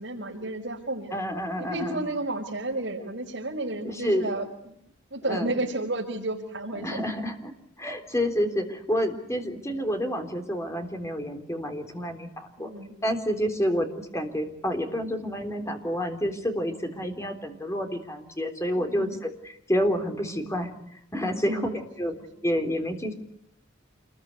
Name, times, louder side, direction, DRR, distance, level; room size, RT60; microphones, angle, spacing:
voice 1, 0.0-1.1 1.6-4.7 5.1-7.1 9.6-9.8 12.6-13.0 18.8-19.2 21.4-21.7 22.2-22.3, right 2 dB, 65° right, -3 dB, 5.3 m, -32 dB
voice 2, 1.1-2.0 3.8-4.3 5.3-5.5 6.8-7.5 7.8-12.7 13.0-22.1 22.4-23.1, equal, 15° left, 5 dB, 3.7 m, -29 dB
28.0 x 21.5 x 9.8 m, 0.74 s
head